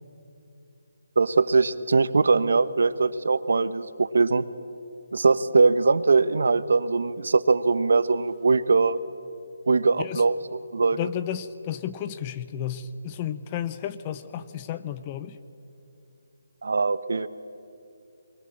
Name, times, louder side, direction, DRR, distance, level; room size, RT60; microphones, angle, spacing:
voice 1, 1.2-4.4 5.1-9.0 9.7-11.0 16.6-17.3, right 4 dB, 65° right, 15 dB, 0.9 m, -21 dB
voice 2, 10.9-15.4, left 10 dB, 15° left, 13 dB, 0.5 m, -32 dB
23.0 x 20.5 x 8.8 m, 2.7 s
hypercardioid pair, 175°, 0 cm